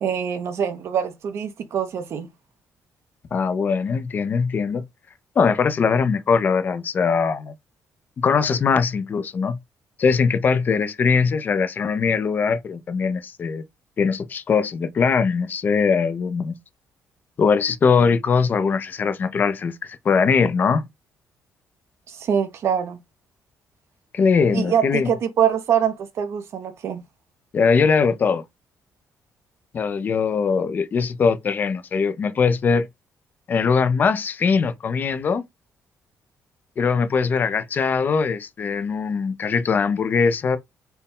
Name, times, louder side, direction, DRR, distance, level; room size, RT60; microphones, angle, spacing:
voice 1, 0.0-2.3 22.1-23.0 24.5-27.0, right 8 dB, 50° right, 0.6 m, -24 dB
voice 2, 3.3-4.8 5.4-7.5 8.2-9.6 10.0-13.6 14.0-16.6 17.4-20.8 24.1-25.1 27.5-28.4 29.7-32.9 33.5-35.4 36.8-40.6, left 5 dB, 35° left, 0.5 m, -21 dB
4.3 x 2.2 x 3.6 m
cardioid pair, 175°, 6 cm